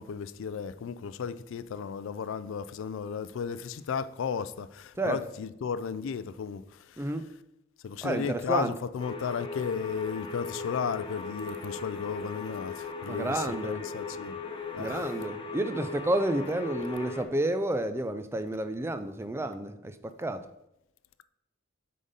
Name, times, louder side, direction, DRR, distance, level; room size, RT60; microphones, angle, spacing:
voice 1, 0.0-4.7 5.1-6.6 7.8-12.7 13.0-14.3 14.8-15.0, left 6 dB, 65° left, 0.4 m, -34 dB
voice 2, 8.0-8.7 13.1-13.8 14.8-20.4, right 1 dB, 10° right, 0.4 m, -30 dB
sound 1, 9.0-17.2, left 5 dB, 25° left, 0.7 m, -38 dB
7.9 x 3.8 x 5.1 m
head